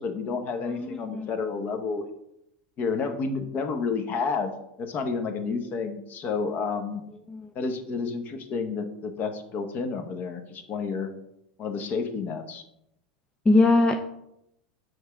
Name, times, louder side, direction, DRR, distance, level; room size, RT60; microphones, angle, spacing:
voice 1, 0.0-2.0 2.8-4.5 4.8-7.0 7.5-11.1 11.6-12.6, left 4 dB, 40° left, 7 dB, 1.1 m, -30 dB
voice 2, 0.7-1.3 7.3-7.4 13.5-14.0, left 2 dB, 15° left, 5 dB, 0.5 m, -21 dB
6.4 x 3.3 x 5.9 m, 0.80 s
hypercardioid pair, 90°, 5 cm